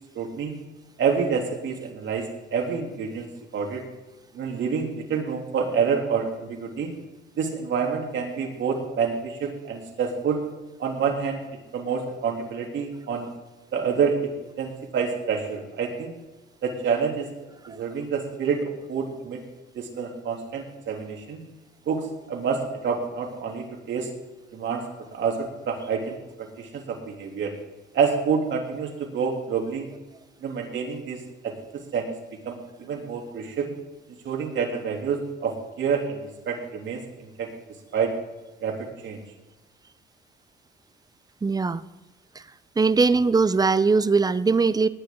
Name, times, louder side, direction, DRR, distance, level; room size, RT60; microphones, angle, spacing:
voice 1, 0.1-0.6 1.0-3.3 3.5-3.8 4.3-6.9 7.4-10.4 10.8-11.4 11.7-13.3 13.7-14.3 14.6-16.1 16.6-17.3 17.7-19.4 19.7-21.4 21.9-24.1 24.5-24.8 25.1-27.5 27.9-29.9 30.4-31.5 31.9-32.1 32.4-33.7 34.2-37.5 37.9-38.1 38.6-39.2, right 6 dB, 70° right, 1 dB, 3.1 m, -28 dB
voice 2, 41.4-41.8 42.4-42.5 42.8-44.9, right 4 dB, 20° right, 16 dB, 0.6 m, -20 dB
19.0 x 10.5 x 3.8 m, 1.1 s
cardioid pair, 90°, 20 cm